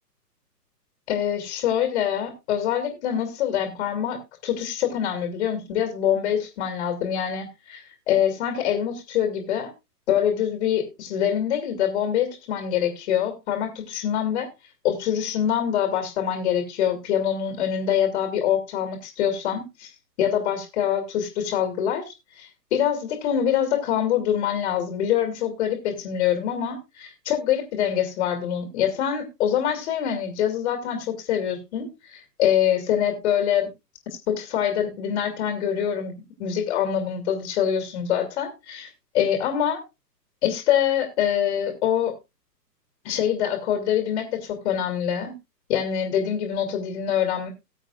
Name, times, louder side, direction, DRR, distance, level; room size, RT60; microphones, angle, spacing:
voice 1, 1.1-9.7 10.1-14.5 14.8-19.9 20.2-33.7 34.3-36.1 36.4-39.8 40.4-42.1 43.0-45.3 45.7-47.5, left 9 dB, 40° left, 5 dB, 2.4 m, -25 dB
18.5 x 7.7 x 2.4 m, 0.24 s
hypercardioid pair, 130°, 49 cm